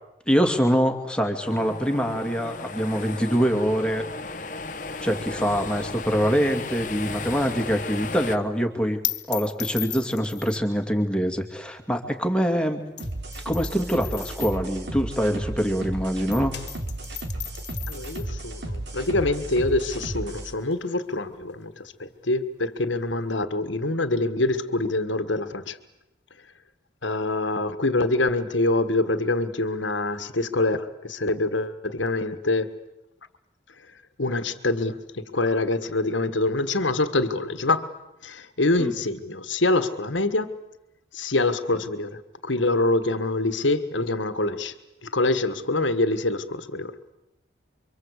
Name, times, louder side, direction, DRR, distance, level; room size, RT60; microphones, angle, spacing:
voice 1, 0.3-4.1 5.0-9.0 9.3-12.8 13.4-16.5 38.8-38.9, equal, 5° left, 5 dB, 2.5 m, -24 dB
sound 1, 1.4-8.4, left 3 dB, 45° left, 1.1 m, -35 dB
sound 2, 7.6-15.9 16.2-23.4, left 15 dB, 70° left, 1.7 m, -38 dB
sound 3, 13.0-20.5, right 1 dB, 70° right, 3.8 m, -33 dB
voice 2, 17.9-25.8 27.0-32.8 33.8-33.9 34.2-37.9 38.2-40.5 41.1-44.7 45.0-46.9, left 2 dB, 90° left, 11 dB, 1.7 m, -25 dB
28.5 x 24.5 x 8.3 m, 0.90 s
head